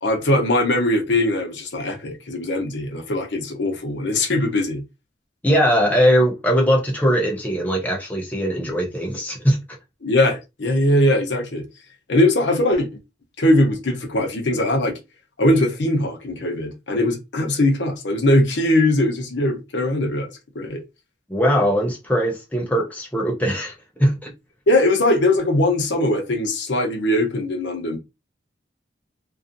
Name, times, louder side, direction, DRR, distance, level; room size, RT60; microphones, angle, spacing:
voice 1, 0.0-4.8 10.0-11.6 12.1-12.9 13.4-15.0 15.4-20.3 20.5-20.8 24.7-28.0, left 1 dB, 70° left, 0.7 m, -20 dB
voice 2, 5.4-9.6 21.3-23.7 24.0-24.3, equal, 10° left, 0.5 m, -20 dB
2.5 x 2.4 x 2.5 m
head